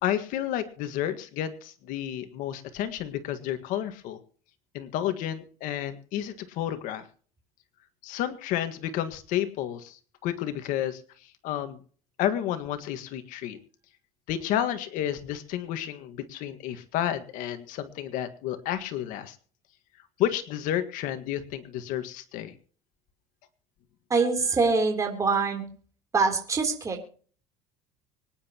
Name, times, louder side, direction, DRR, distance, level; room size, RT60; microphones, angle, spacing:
voice 1, 0.0-4.2 4.7-7.0 8.0-11.0 11.4-11.8 12.2-13.6 14.3-19.4 20.2-22.5, left 11 dB, 65° left, 10 dB, 1.7 m, -31 dB
voice 2, 24.1-25.7 26.1-27.1, right 4 dB, 20° right, 3 dB, 3.5 m, -24 dB
25.0 x 10.5 x 3.0 m, 0.43 s
cardioid pair, 130°, 15 cm